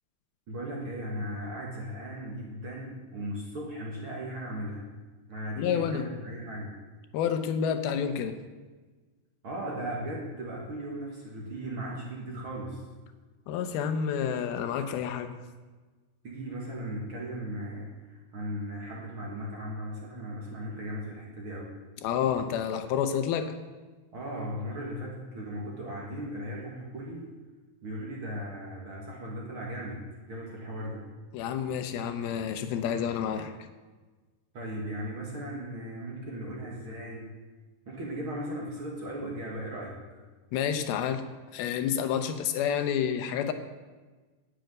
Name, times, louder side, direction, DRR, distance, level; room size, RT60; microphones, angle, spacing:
voice 1, 0.5-4.9 5.3-6.8 9.4-12.8 16.2-21.7 24.1-27.3 27.8-31.1 34.5-37.3 37.9-40.2, equal, 45° right, -3 dB, 2.1 m, -37 dB
voice 2, 5.6-6.1 7.1-8.4 13.5-15.3 22.0-23.5 31.3-33.5 40.5-41.2 41.5-43.5, left 8 dB, 85° left, 8 dB, 2.8 m, -29 dB
12.0 x 6.6 x 9.2 m, 1.3 s
omnidirectional pair, 4.3 m